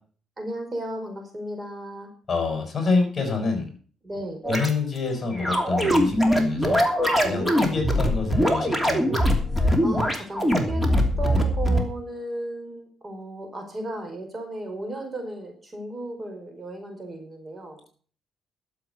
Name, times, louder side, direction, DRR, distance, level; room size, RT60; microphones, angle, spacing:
voice 1, 0.4-2.1 4.0-4.4 7.2-7.4 9.8-10.8 11.2-17.8, right 1 dB, 30° right, 4 dB, 5.0 m, -35 dB
voice 2, 2.3-3.6 4.5-6.8 7.2-9.0, left 4 dB, 35° left, 5 dB, 5.6 m, -27 dB
sound 1, 4.4-4.7 5.4-11.8, equal, 5° right, 2.9 m, -22 dB
12.5 x 7.7 x 7.0 m, 0.43 s
cardioid pair, 90°, 0 cm